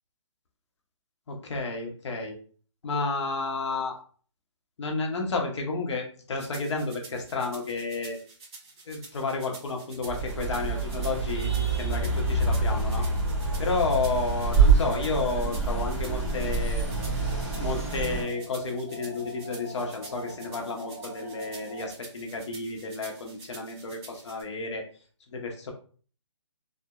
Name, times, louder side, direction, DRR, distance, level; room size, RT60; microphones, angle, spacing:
voice 1, 1.3-2.4 2.8-4.0 4.8-8.2 8.9-11.5 11.8-13.1 13.6-16.8 17.6-24.8 25.3-25.7, left 3 dB, 65° left, 2 dB, 0.7 m, -31 dB
sound 1, 6.4-24.4, right 3 dB, 55° right, 1.1 m, -48 dB
sound 2, 10.0-18.2, right 4 dB, 20° right, 1.2 m, -26 dB
sound 3, 13.2-21.9, left 1 dB, 5° left, 0.3 m, -47 dB
2.8 x 2.1 x 2.3 m, 0.42 s
hypercardioid pair, 155°, 16 cm